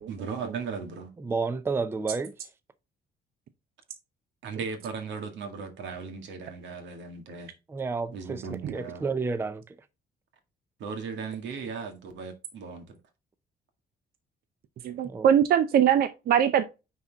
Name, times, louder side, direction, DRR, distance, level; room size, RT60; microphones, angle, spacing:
voice 1, 0.1-1.1 4.4-7.5 8.1-9.1 10.8-13.0, right 5 dB, 90° right, 1.9 m, -37 dB
voice 2, 1.2-2.3 7.7-8.4 8.7-9.6 15.0-15.3, right 4 dB, 15° right, 0.4 m, -30 dB
voice 3, 14.8-16.6, right 9 dB, 55° right, 0.6 m, -22 dB
9.5 x 4.3 x 3.5 m
cardioid pair, 170°, 18 cm